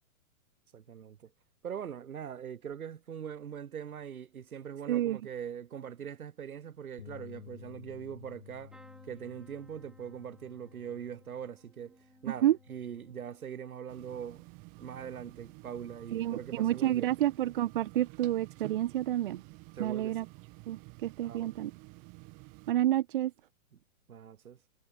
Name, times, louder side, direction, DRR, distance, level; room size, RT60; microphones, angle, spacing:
voice 1, 0.7-1.3 1.6-8.7 9.0-12.0 12.2-14.5 14.8-17.1 19.7-20.2 21.2-21.5 23.7-23.8 24.1-24.6, right 8 dB, 85° right, 4.2 m, -42 dB
Bass guitar, 7.0-13.2, left 10 dB, 60° left, 4.7 m, -53 dB
sound 1, 8.7-16.5 17.0-17.5 18.8-19.0 19.2-19.3, right 1 dB, ahead, 3.7 m, -63 dB
sound 2, 13.9-22.7, right 31 dB, 20° right, 1.5 m, -51 dB
voice 2, 16.1-19.4 19.8-20.2 20.7-21.7 22.7-23.3, right 13 dB, 40° right, 1.0 m, -29 dB
hypercardioid pair, 170°, 42 cm